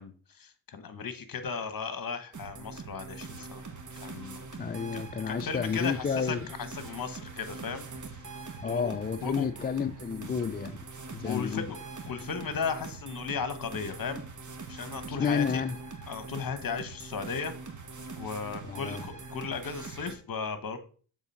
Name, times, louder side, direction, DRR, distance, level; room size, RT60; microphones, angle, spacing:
voice 1, 0.0-5.0 5.3-7.8 8.6-8.9 9.2-9.5 11.2-14.2 14.7-15.6 16.1-17.5 18.2-20.8, left 5 dB, 45° left, 1.3 m, -36 dB
sound 1, 2.3-20.1, right 4 dB, 40° right, 1.5 m, -43 dB
voice 2, 4.6-6.5 8.6-10.8 11.1-11.7 15.2-15.8 18.6-19.1, left 6 dB, 20° left, 0.4 m, -30 dB
7.1 x 4.0 x 5.5 m
cardioid pair, 70°, 48 cm